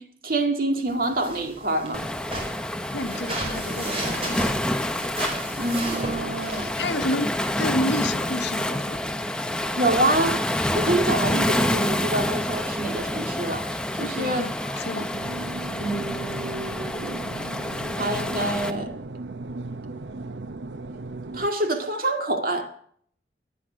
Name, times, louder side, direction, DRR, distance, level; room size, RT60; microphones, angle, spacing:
voice 1, 0.0-2.0 5.6-6.7 9.8-14.4 14.9-15.0 15.8-17.3 17.9-19.0 21.3-22.7, right 1 dB, 55° right, 2.0 m, -27 dB
sound 1, 0.9-7.1, right 1 dB, 35° right, 5.1 m, -34 dB
Waves surf, 1.9-18.7, left 1 dB, 5° left, 0.7 m, -28 dB
voice 2, 2.9-4.5 6.6-9.0 14.0-15.1, left 1 dB, 80° left, 1.0 m, -30 dB
sound 2, 15.1-21.5, right 2 dB, 85° right, 0.8 m, -36 dB
19.5 x 10.0 x 6.3 m
head